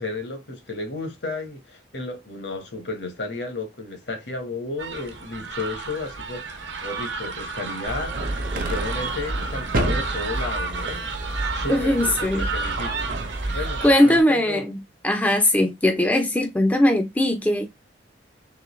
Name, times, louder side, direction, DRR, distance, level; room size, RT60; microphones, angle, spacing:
voice 1, 0.0-8.1 8.5-13.0 13.5-14.6, left 3 dB, 65° left, 1.4 m, -33 dB
sound 1, 4.8-14.2, right 4 dB, 90° right, 1.0 m, -32 dB
sound 2, 7.9-13.9, right 1 dB, 50° right, 0.9 m, -29 dB
voice 2, 11.7-12.5 13.4-13.6 13.8-17.7, left 1 dB, 10° left, 0.5 m, -20 dB
3.8 x 3.2 x 3.1 m
head